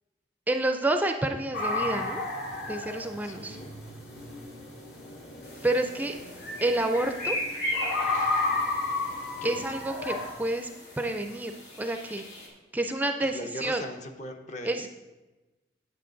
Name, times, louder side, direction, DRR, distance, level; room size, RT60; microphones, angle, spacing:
voice 1, 0.5-2.2 2.7-3.6 5.6-6.1 6.6-7.4 9.4-10.7 11.0-12.3 12.7-13.8 14.6-14.9, right 1 dB, 10° right, 6 dB, 0.4 m, -29 dB
sound 1, 1.5-10.3, left 3 dB, 65° left, 2.4 m, -33 dB
voice 2, 3.2-3.8 9.4-9.7 13.2-14.9, left 1 dB, 45° left, 5 dB, 0.8 m, -40 dB
sound 2, 5.4-12.5, left 1 dB, 85° left, 2.2 m, -38 dB
9.2 x 8.2 x 3.8 m, 1.1 s
head